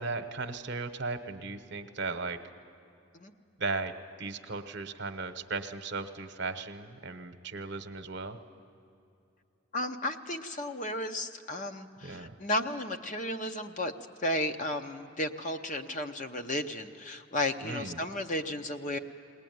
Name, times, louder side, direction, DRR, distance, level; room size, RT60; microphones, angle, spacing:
voice 1, 0.0-2.4 3.6-3.9 4.2-8.4 12.0-12.3 17.6-18.0, right 3 dB, 55° right, 8 dB, 1.0 m, -36 dB
voice 2, 9.7-13.9 14.2-19.0, left 1 dB, 35° left, 6 dB, 0.8 m, -33 dB
21.0 x 19.0 x 9.4 m, 2.5 s
head